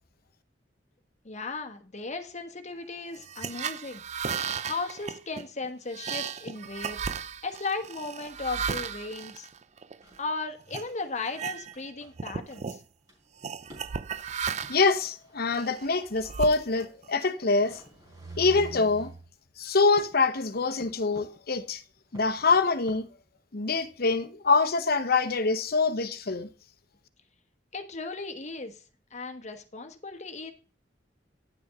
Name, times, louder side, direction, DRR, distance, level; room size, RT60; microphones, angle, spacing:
voice 1, 1.2-4.0 4.6-7.0 7.4-9.5 10.2-12.8 27.7-28.8 29.1-30.5, left 3 dB, 40° left, 1.3 m, -36 dB
sound 1, 3.1-10.2 10.7-10.9 11.3-11.9 12.1-12.8 13.4-14.9 15.5-17.1, right 6 dB, 40° right, 0.5 m, -35 dB
sound 2, 10.0-10.3 10.8-11.4 11.7-11.8 12.0-12.1 12.5-12.6 13.1-13.2 13.7-14.0 14.6-16.6 17.0-17.1 17.4-19.3 20.0-20.3 20.8-21.4 22.1-23.0, right 2 dB, 20° right, 3.9 m, -46 dB
voice 2, 14.7-17.8 18.4-19.1 19.6-21.8 22.1-23.1 23.5-26.5, left 4 dB, 55° left, 0.9 m, -25 dB
10.0 x 6.9 x 3.6 m
head